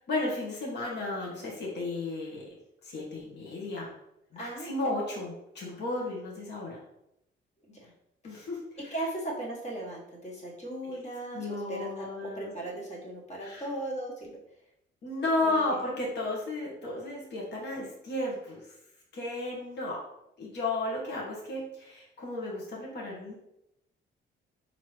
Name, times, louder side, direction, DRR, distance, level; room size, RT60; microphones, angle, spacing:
voice 1, 0.1-2.5 2.8-3.9 4.3-6.8 8.2-8.9 10.9-11.0 11.3-12.5 13.4-13.7 15.0-18.6 19.1-20.0 20.4-23.3, left 2 dB, 60° left, -3 dB, 1.2 m, -33 dB
voice 2, 4.3-4.9 7.7-7.9 8.9-14.4 15.4-15.8, right 1 dB, 35° left, -3 dB, 1.5 m, -37 dB
4.4 x 2.9 x 3.2 m, 0.82 s
cardioid pair, 90°, 20 cm